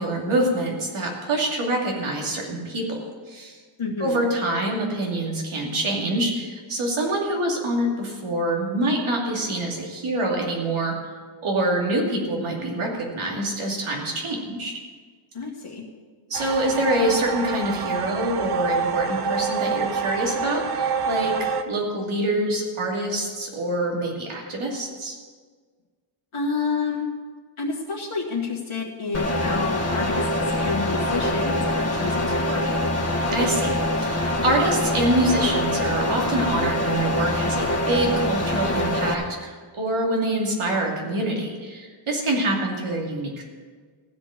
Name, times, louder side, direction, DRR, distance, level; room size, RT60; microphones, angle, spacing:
voice 1, 0.0-3.6 4.0-10.9 11.4-14.7 16.3-25.2 33.3-43.4, right 1 dB, 85° right, -1 dB, 2.8 m, -25 dB
voice 2, 3.8-4.2 15.3-15.8 26.3-27.1 27.6-32.8, left 4 dB, 85° left, -4 dB, 1.9 m, -29 dB
sound 1, 16.3-21.6, right 5 dB, 55° right, 0.7 m, -27 dB
sound 2, 29.1-39.1, left 1 dB, 30° left, 1.6 m, -24 dB
15.5 x 5.5 x 8.8 m, 1.5 s
wide cardioid pair, 105°, 48 cm